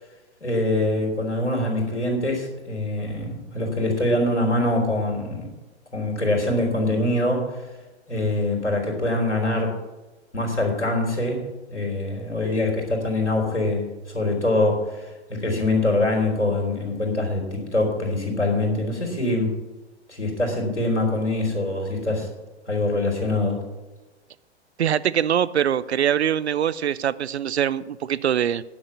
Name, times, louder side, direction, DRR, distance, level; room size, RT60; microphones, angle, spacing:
voice 1, 0.4-5.5 5.9-7.7 8.1-9.8 10.3-11.4 11.7-13.9 14.1-19.5 20.1-22.3 22.7-23.6, left 2 dB, 90° left, 0 dB, 3.5 m, -24 dB
voice 2, 24.8-28.6, right 9 dB, 70° right, 18 dB, 0.6 m, -23 dB
10.5 x 6.4 x 8.1 m, 1.1 s
figure-of-eight pair, 110°, 34 cm